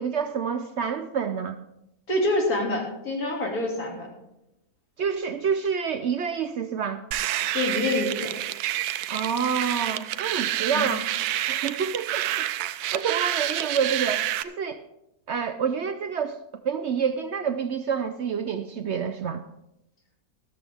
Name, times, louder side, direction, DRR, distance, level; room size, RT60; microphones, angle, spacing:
voice 1, 0.0-1.6 5.0-7.0 9.1-11.1 11.5-12.5 12.9-14.8 15.3-16.4 16.6-19.4, right 6 dB, 65° right, 9 dB, 0.7 m, -28 dB
voice 2, 2.1-4.1 7.5-8.3 10.7-10.9, left 2 dB, 75° left, -1 dB, 3.1 m, -26 dB
sound 1, 7.1-14.4, right 13 dB, 85° right, 1.1 m, -28 dB
13.0 x 13.0 x 3.5 m, 0.86 s
omnidirectional pair, 1.6 m